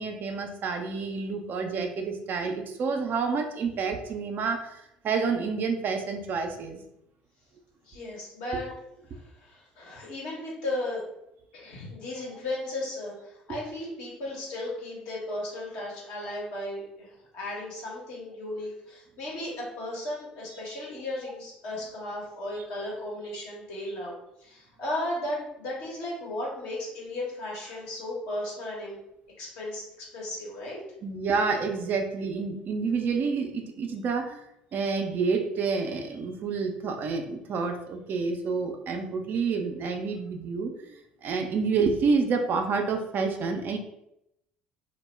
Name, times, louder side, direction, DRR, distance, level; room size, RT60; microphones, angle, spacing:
voice 1, 0.0-6.8 8.5-8.6 31.0-34.4 34.7-43.8, right 4 dB, 50° right, 5 dB, 0.4 m, -29 dB
voice 2, 7.8-8.7 9.1-11.0 11.5-29.0 29.4-30.8, left 1 dB, 70° left, -4 dB, 1.0 m, -35 dB
2.2 x 2.0 x 3.2 m, 0.81 s
hypercardioid pair, 60°, 4 cm